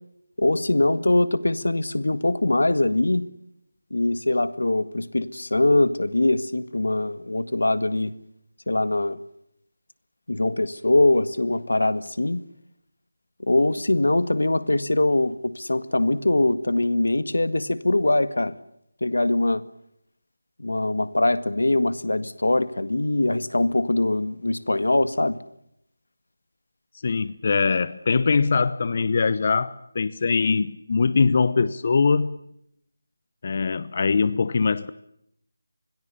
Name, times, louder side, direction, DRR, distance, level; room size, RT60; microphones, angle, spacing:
voice 1, 0.4-3.3 3.9-8.1 8.7-9.2 10.3-12.4 13.4-18.5 19.0-19.6 20.6-25.4, left 2 dB, 85° left, 1.8 m, -22 dB
voice 2, 27.0-32.4 33.4-34.9, left 4 dB, 40° left, 1.0 m, -22 dB
27.5 x 21.5 x 7.0 m
figure-of-eight pair, 165°, 0 cm